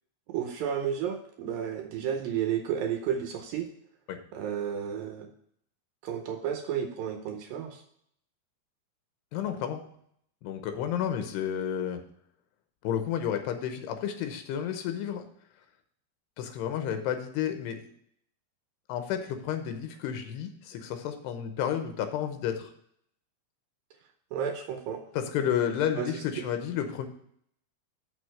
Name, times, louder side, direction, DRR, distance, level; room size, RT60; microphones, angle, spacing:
voice 1, 0.3-3.7 4.3-5.3 6.0-7.8 24.3-25.0 26.0-26.4, right 8 dB, 80° right, 5 dB, 2.2 m, -32 dB
voice 2, 9.3-9.8 10.4-12.0 12.8-15.3 16.4-17.8 18.9-22.7 25.1-27.1, left 9 dB, 85° left, 7 dB, 2.9 m, -31 dB
6.6 x 6.4 x 7.7 m, 0.67 s
omnidirectional pair, 4.8 m